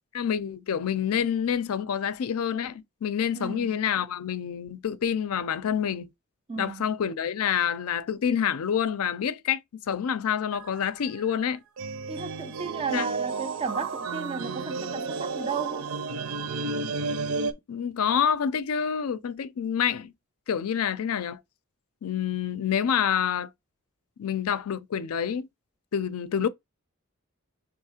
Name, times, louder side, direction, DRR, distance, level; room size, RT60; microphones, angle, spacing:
voice 1, 0.1-6.1 6.6-9.6 9.9-11.6 12.9-13.1 17.7-20.1 20.5-21.4 22.0-23.5 24.2-25.5 25.9-26.5, left 8 dB, 75° left, 0.4 m, -27 dB
voice 2, 3.3-3.8 6.5-6.8 12.1-15.9, right 5 dB, 25° right, 0.3 m, -34 dB
sound 1, 10.5-10.8 11.0-11.3 11.8-17.5, right 4 dB, 75° right, 0.6 m, -32 dB
3.6 x 3.0 x 4.8 m
head